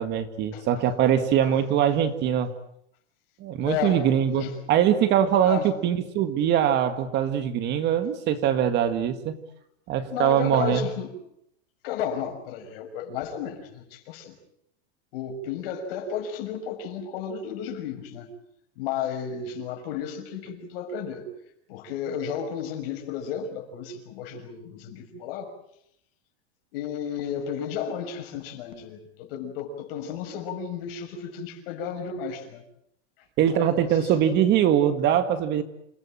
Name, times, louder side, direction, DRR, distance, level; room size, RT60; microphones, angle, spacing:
voice 1, 0.0-2.5 3.4-9.4 9.9-10.9 33.4-35.6, right 9 dB, 30° right, 10 dB, 1.9 m, -22 dB
voice 2, 0.5-0.9 1.4-1.6 3.6-4.0 4.3-4.6 5.4-5.7 10.1-11.1 11.8-14.3 15.1-18.3 18.8-21.3 21.7-25.5 26.7-32.6 33.5-34.3, left 7 dB, 60° left, 5 dB, 6.3 m, -33 dB
28.0 x 17.5 x 9.0 m, 0.75 s
supercardioid pair, 160°, 33 cm